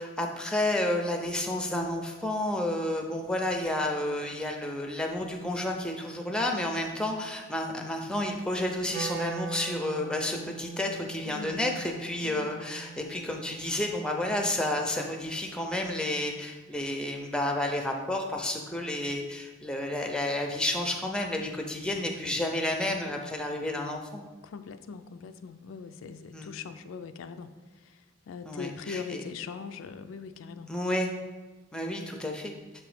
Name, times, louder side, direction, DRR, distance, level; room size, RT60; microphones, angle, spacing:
voice 1, 0.0-24.2 26.3-26.5 28.4-29.2 30.7-31.1 31.7-32.5, left 1 dB, 5° left, 2 dB, 0.4 m, -31 dB
Wind instrument woodwind instrument, 8.9-15.0, right 7 dB, 55° right, 0.4 m, -42 dB
voice 2, 11.2-11.6 12.2-12.5 24.4-27.5 27.9-28.0 28.3-30.7, left 5 dB, 85° left, 10 dB, 0.3 m, -41 dB
6.5 x 3.0 x 4.8 m, 1.3 s
head